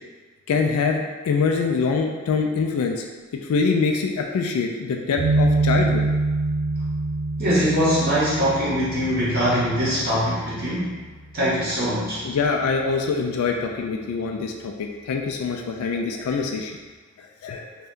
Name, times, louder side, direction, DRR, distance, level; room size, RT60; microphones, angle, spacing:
voice 1, 0.5-3.0 3.5-6.0 12.2-16.7 17.4-17.6, left 4 dB, 80° left, 2 dB, 0.3 m, -24 dB
sound 1, 5.2-12.2, right 2 dB, 70° right, 0.4 m, -26 dB
voice 2, 7.4-11.0 11.3-12.2, equal, 45° right, -8 dB, 0.7 m, -22 dB
2.6 x 2.2 x 3.5 m, 1.4 s
head